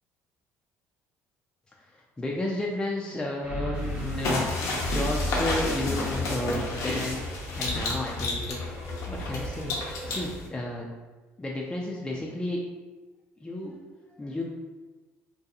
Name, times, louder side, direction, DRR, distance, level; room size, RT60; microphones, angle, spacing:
voice 1, 1.8-7.2 7.6-8.6 9.1-9.7 10.1-10.9 11.4-12.6 13.4-13.8 14.1-14.4, left 1 dB, 15° left, -2 dB, 0.3 m, -32 dB
sound 1, 3.4-10.3, left 1 dB, 25° right, 0.9 m, -35 dB
sound 2, 3.8-10.5, left 2 dB, 70° left, 0.6 m, -32 dB
2.7 x 2.2 x 2.4 m, 1.2 s
supercardioid pair, 85°, 6 cm